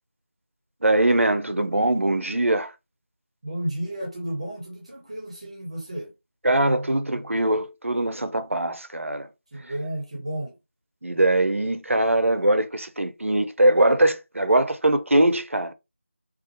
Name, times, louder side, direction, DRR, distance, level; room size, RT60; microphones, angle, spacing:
voice 1, 0.8-2.7 6.4-9.3 11.0-15.7, right 1 dB, 80° right, 0.5 m, -22 dB
voice 2, 3.4-6.1 9.5-10.5, right 1 dB, 30° right, 0.7 m, -32 dB
2.4 x 2.1 x 2.7 m
figure-of-eight pair, 170°, 7 cm